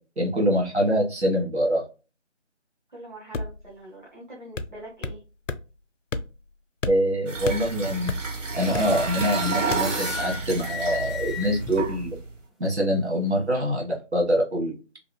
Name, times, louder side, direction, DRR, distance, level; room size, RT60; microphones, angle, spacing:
voice 1, 0.2-1.8 6.9-8.1 8.5-12.2 12.6-14.8, equal, 60° right, -1 dB, 1.4 m, -24 dB
voice 2, 2.9-5.2, right 1 dB, 40° right, -5 dB, 1.0 m, -43 dB
sound 1, 3.3-3.7 4.6-5.2 5.5-5.6 6.1-6.5 6.8-8.4 8.7-9.4 9.7-9.9, left 3 dB, 90° left, 0.5 m, -32 dB
sound 2, 7.3-12.3, right 4 dB, 85° right, 0.8 m, -31 dB
sound 3, 8.5-12.1, left 2 dB, ahead, 0.3 m, -35 dB
2.8 x 2.6 x 2.2 m, 0.31 s
figure-of-eight pair, 170°, 36 cm